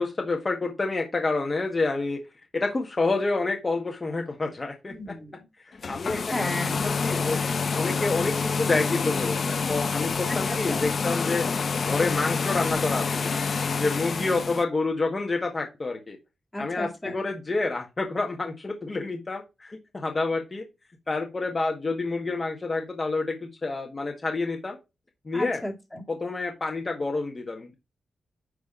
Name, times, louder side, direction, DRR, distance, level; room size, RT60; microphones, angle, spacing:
voice 1, 0.0-2.2 2.5-4.9 5.9-6.5 6.8-11.5 11.8-13.4 13.8-16.2 16.6-20.6 21.1-24.8 25.2-25.6 26.1-27.7, left 3 dB, 30° left, 1 dB, 1.6 m, -28 dB
voice 2, 4.9-5.4 6.3-6.8 10.3-10.9 14.1-14.4 16.5-17.3 25.3-26.0, left 1 dB, 15° left, 2 dB, 2.2 m, -35 dB
sound 1, 5.7-14.6, left 5 dB, 55° left, 0.7 m, -27 dB
9.9 x 3.5 x 3.9 m, 0.24 s
wide cardioid pair, 100°, 0 cm